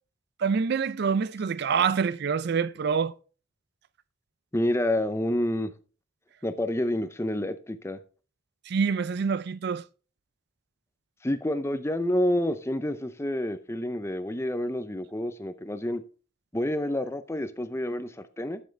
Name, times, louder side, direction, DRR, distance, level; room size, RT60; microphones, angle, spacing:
voice 1, 0.4-3.1 8.7-9.8, right 6 dB, 55° right, 0.4 m, -26 dB
voice 2, 4.5-5.7 6.4-8.0 11.2-16.0 16.5-18.1 18.4-18.6, left 1 dB, 15° left, 0.6 m, -28 dB
12.0 x 7.3 x 3.3 m
head